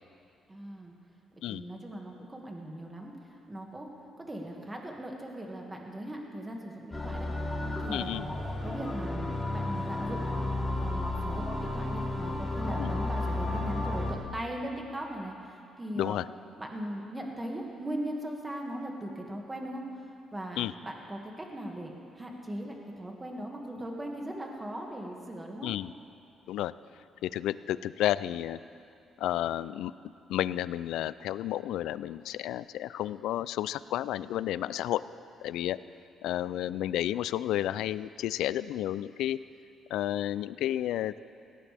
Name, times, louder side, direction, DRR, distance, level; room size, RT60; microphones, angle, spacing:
voice 1, 0.5-0.9 1.5-3.9 4.2-7.3 7.8-8.2 8.6-10.2 10.7-16.2 16.6-19.8 20.3-25.7, right 1 dB, 20° right, 0 dB, 2.0 m, -39 dB
sound 1, 6.9-14.1, left 2 dB, 15° left, 2.6 m, -32 dB
voice 2, 7.9-8.2 12.8-12.9 15.9-16.3 20.6-20.7 25.6-25.9 26.5-26.7 27.2-28.6 29.2-29.9 30.3-35.0 35.4-35.8 36.2-39.4 39.9-41.2, left 13 dB, 90° left, 17 dB, 0.3 m, -31 dB
18.5 x 16.0 x 3.5 m, 2.5 s
cardioid pair, 90°, 0 cm